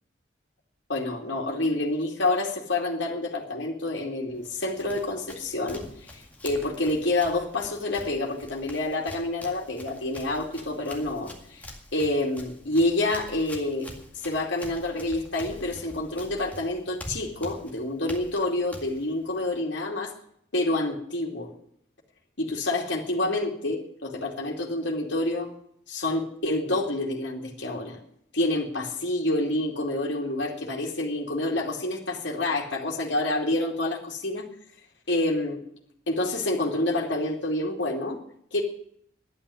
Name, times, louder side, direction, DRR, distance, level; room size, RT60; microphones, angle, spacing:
voice 1, 0.9-11.6 11.9-13.9 14.2-20.1 20.5-21.5 22.4-25.5 25.9-28.0 28.3-34.5 35.1-35.6 36.1-38.2 38.5-38.6, left 2 dB, 65° left, 0 dB, 2.6 m, -28 dB
Run, 4.3-19.6, left 1 dB, 10° left, 2.0 m, -45 dB
11.5 x 9.1 x 10.0 m, 0.67 s
head